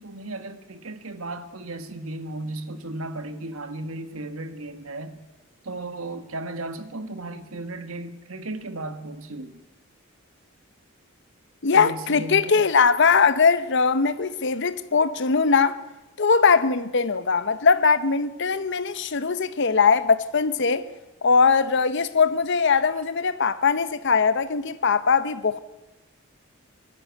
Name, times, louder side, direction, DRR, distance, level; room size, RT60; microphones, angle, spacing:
voice 1, 0.0-5.2 5.6-9.6 11.7-12.6, right 2 dB, 85° right, 1.7 m, -35 dB
voice 2, 11.6-15.8 16.2-20.8 21.2-25.6, left 5 dB, 60° left, 0.8 m, -21 dB
22.0 x 12.5 x 9.3 m
head